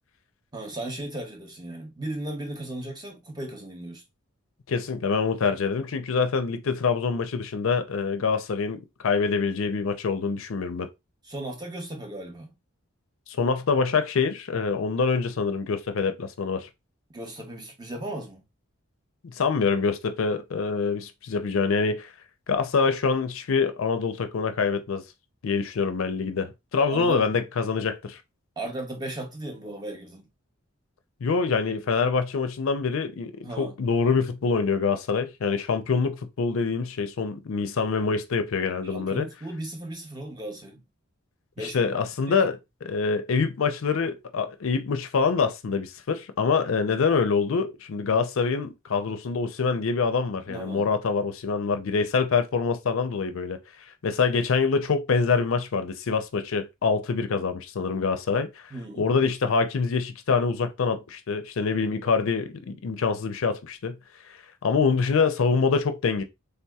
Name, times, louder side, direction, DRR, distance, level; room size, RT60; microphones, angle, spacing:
voice 1, 0.5-4.0 11.3-12.5 17.1-18.4 26.7-27.3 28.6-30.3 33.4-33.8 38.9-40.8 41.6-41.9 42.3-42.4 50.5-50.9 58.7-59.1, right 1 dB, 20° right, 0.6 m, -36 dB
voice 2, 4.7-10.9 13.3-16.7 19.3-22.1 22.5-25.0 25.4-28.2 31.2-39.3 41.6-53.6 54.0-58.7 59.0-63.9 64.3-64.4 64.6-66.2, left 5 dB, 65° left, 0.5 m, -25 dB
3.5 x 2.7 x 2.3 m
head